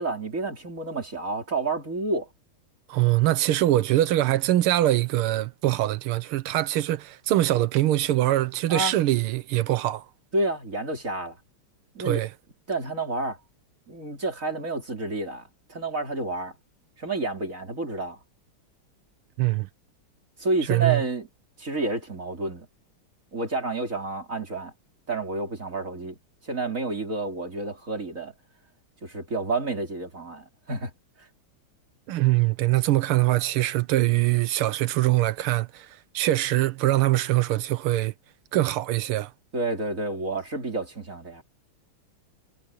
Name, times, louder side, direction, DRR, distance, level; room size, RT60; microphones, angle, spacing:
voice 1, 0.0-2.3 8.7-8.9 10.3-11.4 12.0-12.2 12.7-13.4 13.9-15.4 15.7-16.5 17.0-18.2 20.4-21.3 21.6-22.7 23.3-24.7 25.1-26.2 26.4-28.3 29.0-30.9 39.5-41.4, right 2 dB, 35° right, 3.8 m, -29 dB
voice 2, 2.9-10.0 12.0-12.3 19.4-19.7 20.7-21.0 32.1-35.9 36.1-38.1 38.5-39.3, right 15 dB, 80° right, 1.7 m, -23 dB
omnidirectional pair, 2.4 m